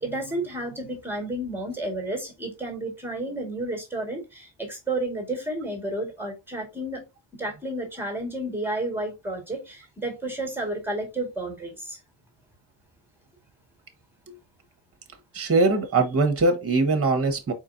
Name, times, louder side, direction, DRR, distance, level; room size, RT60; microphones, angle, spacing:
voice 1, 0.0-7.0 7.4-12.0, right 1 dB, 5° right, 1.8 m, -31 dB
voice 2, 15.3-17.5, right 3 dB, 30° right, 1.3 m, -21 dB
4.5 x 4.4 x 2.6 m
wide cardioid pair, 120°, 45 cm